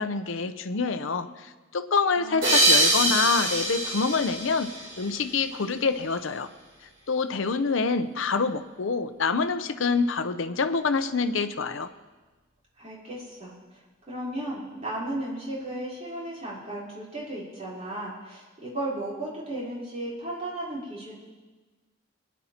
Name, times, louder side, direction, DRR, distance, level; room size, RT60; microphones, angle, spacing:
voice 1, 0.0-4.7 5.0-6.5 7.1-11.9, left 4 dB, 70° left, 11 dB, 0.7 m, -26 dB
voice 2, 2.2-2.6 12.8-13.5 14.1-21.2, right 1 dB, 35° right, -7 dB, 3.9 m, -35 dB
sound 1, 2.4-5.5, right 1 dB, 65° right, 4.1 m, -24 dB
23.0 x 10.5 x 2.9 m, 1.2 s
head